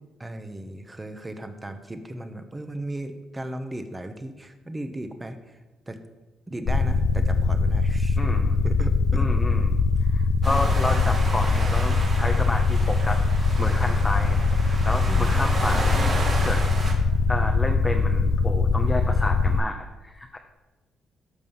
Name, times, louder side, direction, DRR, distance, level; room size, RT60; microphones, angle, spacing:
voice 1, 0.2-5.6 5.9-6.0 6.5-8.2 8.6-9.2 15.1-15.3, right 1 dB, 15° right, 8 dB, 1.2 m, -36 dB
sound 1, 6.7-19.6, left 4 dB, 60° left, 0.5 m, -22 dB
voice 2, 8.2-8.6 9.1-9.8 10.1-13.2 13.6-16.0 16.3-16.6 17.3-20.4, left 2 dB, 15° left, 3 dB, 0.9 m, -31 dB
sound 2, 10.4-16.9, right 2 dB, 45° right, 2.7 m, -33 dB
13.0 x 5.5 x 5.6 m, 1.1 s
cardioid pair, 90°, 0 cm